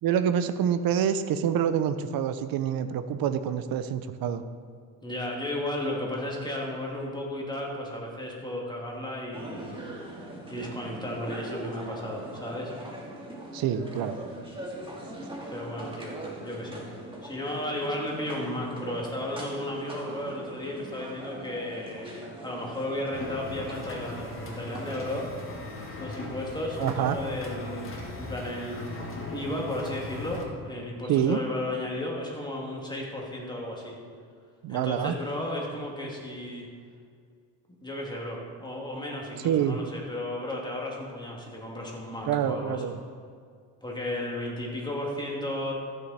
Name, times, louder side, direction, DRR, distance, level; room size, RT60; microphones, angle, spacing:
voice 1, 0.0-4.4 13.5-14.2 26.8-27.2 31.1-31.4 34.6-35.1 39.4-39.8 42.3-43.0, right 9 dB, 65° right, 11 dB, 0.8 m, -26 dB
voice 2, 5.0-9.8 10.5-12.7 15.5-16.8 17.2-25.3 26.0-33.9 34.7-36.7 37.7-42.8 43.8-45.7, left 1 dB, 10° left, -2 dB, 2.4 m, -34 dB
Park Istanbul, 9.3-25.3, right 1 dB, 15° right, 2.2 m, -41 dB
sound 1, 23.1-30.4, left 2 dB, 35° left, 1.9 m, -39 dB
14.0 x 6.6 x 4.3 m, 2.1 s
cardioid pair, 100°, 38 cm